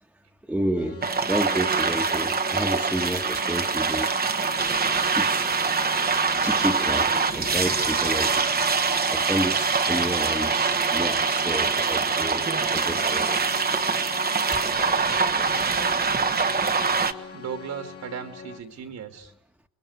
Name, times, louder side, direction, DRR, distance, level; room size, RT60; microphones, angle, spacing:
voice 1, 0.5-4.1 5.2-5.5 6.4-8.5 9.1-13.4 14.5-14.6, right 1 dB, 5° right, 3 dB, 1.9 m, -30 dB
sound 1, 0.8-18.6, left 6 dB, 50° left, 2.8 m, -41 dB
sound 2, 1.0-17.1, right 5 dB, 30° right, 1.5 m, -24 dB
voice 2, 17.3-19.3, right 7 dB, 65° right, 7 dB, 2.9 m, -36 dB
29.5 x 22.0 x 8.2 m, 0.71 s
cardioid pair, 90°, 30 cm